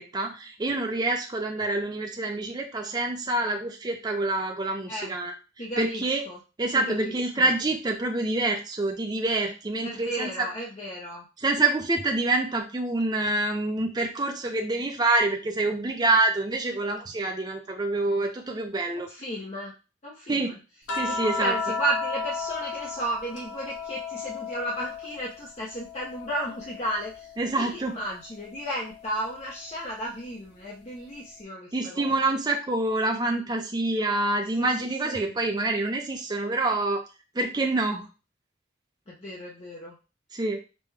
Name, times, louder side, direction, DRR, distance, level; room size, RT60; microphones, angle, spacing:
voice 1, 0.0-5.3 5.8-6.3 6.6-10.5 11.4-19.1 20.3-20.5 20.9-21.5 27.4-28.0 31.7-37.0 37.3-38.1 40.3-40.6, right 2 dB, 20° right, 2 dB, 0.5 m, -26 dB
voice 2, 5.6-6.4 6.7-7.5 9.8-11.2 19.0-19.7 20.0-20.5 21.0-32.1 34.6-34.7 35.0-35.3 39.1-39.9, right 1 dB, 35° left, -4 dB, 0.7 m, -34 dB
sound 1, 20.9-25.4 25.7-27.4 28.9-29.0, left 4 dB, 85° left, 0.7 m, -33 dB
5.3 x 2.2 x 3.2 m, 0.31 s
head